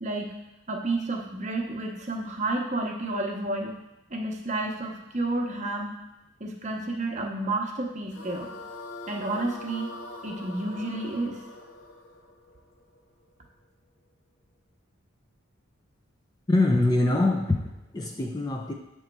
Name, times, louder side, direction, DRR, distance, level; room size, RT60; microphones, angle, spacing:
voice 1, 0.0-0.3 0.7-3.8 4.1-5.9 6.4-8.5 9.1-10.0 10.2-11.4, right 2 dB, 35° right, 1 dB, 0.7 m, -30 dB
sound 1, 8.1-13.3, left 2 dB, 65° left, 0.7 m, -43 dB
voice 2, 16.5-18.7, left 2 dB, 20° left, 2 dB, 0.3 m, -24 dB
7.8 x 3.1 x 4.5 m, 0.94 s
head